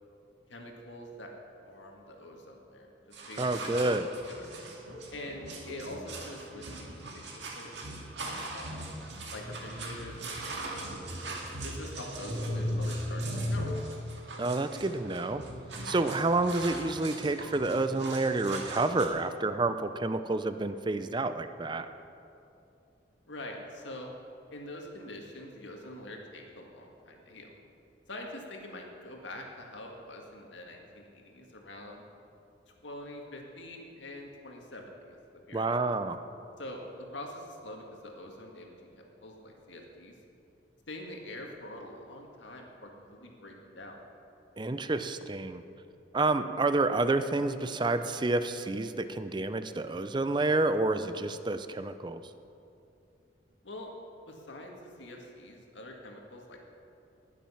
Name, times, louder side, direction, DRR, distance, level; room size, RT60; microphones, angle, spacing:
voice 1, 0.5-1.3 1.6-4.5 5.1-8.0 8.3-8.8 9.3-11.0 11.6-13.7 23.3-24.1 24.5-27.6 28.1-32.1 32.7-35.2 35.5-35.8 36.6-40.1 40.9-44.0 53.6-53.9 54.3-56.6, left 1 dB, 85° left, 1 dB, 1.9 m, -45 dB
sound 1, 3.1-19.1, right 1 dB, 70° right, 2.0 m, -38 dB
voice 2, 3.4-4.1 14.4-15.4 15.8-21.9 35.5-36.2 44.6-45.6 46.1-52.2, right 2 dB, 25° right, 10 dB, 0.5 m, -29 dB
19.5 x 7.4 x 5.7 m, 2.7 s
head